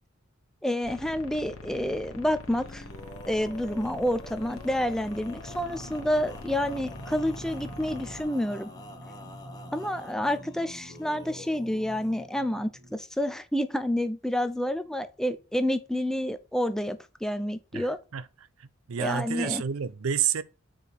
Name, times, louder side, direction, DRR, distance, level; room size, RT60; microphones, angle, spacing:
voice 1, 0.6-2.8 3.3-8.7 9.7-18.0 19.0-19.6, left 1 dB, ahead, 0.4 m, -29 dB
sound 1, 0.8-8.2, left 2 dB, 80° left, 1.1 m, -44 dB
Male singing, 2.4-12.2, left 1 dB, 20° left, 1.1 m, -46 dB
sound 2, 5.4-13.0, right 1 dB, 35° right, 1.1 m, -46 dB
voice 2, 17.7-18.3 18.6-20.4, right 8 dB, 85° right, 0.5 m, -30 dB
4.8 x 4.7 x 5.2 m
head